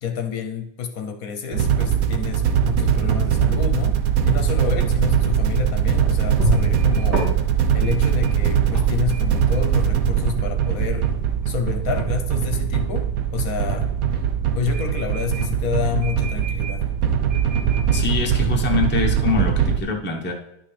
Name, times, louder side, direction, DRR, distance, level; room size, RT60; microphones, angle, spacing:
voice 1, 0.0-7.3 7.7-11.1 11.5-13.9 14.5-16.9, left 7 dB, 65° left, 6 dB, 1.1 m, -29 dB
sound 1, 1.5-19.8, right 8 dB, 70° right, 1.0 m, -21 dB
sound 2, 6.1-19.5, equal, 85° right, 2.7 m, -33 dB
voice 2, 17.9-20.3, left 5 dB, 10° left, 0 dB, 0.7 m, -24 dB
11.0 x 5.9 x 3.3 m, 0.83 s
omnidirectional pair, 1.7 m